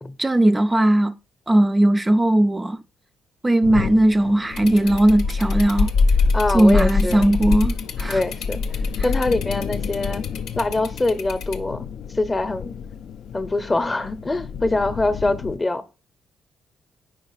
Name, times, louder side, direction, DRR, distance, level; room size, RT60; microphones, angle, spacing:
voice 1, 0.2-1.1 1.5-2.8 3.4-5.9 6.5-8.2 9.0-9.1, right 1 dB, 20° right, 0.3 m, -18 dB
sound 1, 3.6-15.6, left 8 dB, 70° left, 0.3 m, -34 dB
sound 2, 4.5-11.6, left 4 dB, 90° left, 0.7 m, -24 dB
voice 2, 6.3-7.3 8.1-8.6 9.0-10.2 10.6-11.9 12.1-12.7 13.3-15.8, left 2 dB, 20° left, 0.7 m, -24 dB
4.7 x 4.6 x 5.6 m
cardioid pair, 90°, 0 cm